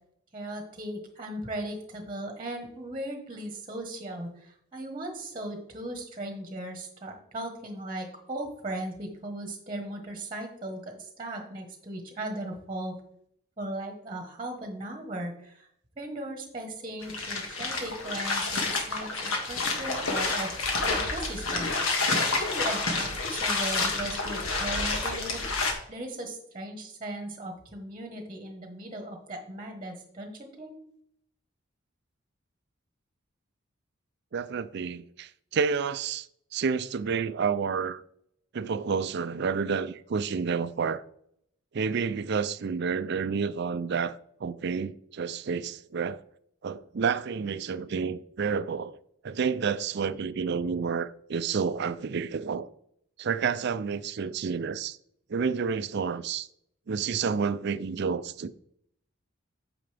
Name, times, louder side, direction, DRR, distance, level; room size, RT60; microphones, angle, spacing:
voice 1, 0.3-12.9 13.6-15.7 16.0-20.5 20.7-21.7 22.2-25.5 25.9-30.7, right 1 dB, 25° right, 1.3 m, -37 dB
sound 1, 17.0-25.7, left 3 dB, 85° left, 1.7 m, -29 dB
voice 2, 34.3-36.3 36.5-38.0 38.5-41.0 41.7-46.2 46.6-49.0 49.2-52.7 53.2-55.0 55.3-56.5 56.9-58.5, right 5 dB, 55° right, 0.4 m, -29 dB
9.0 x 6.8 x 3.4 m
head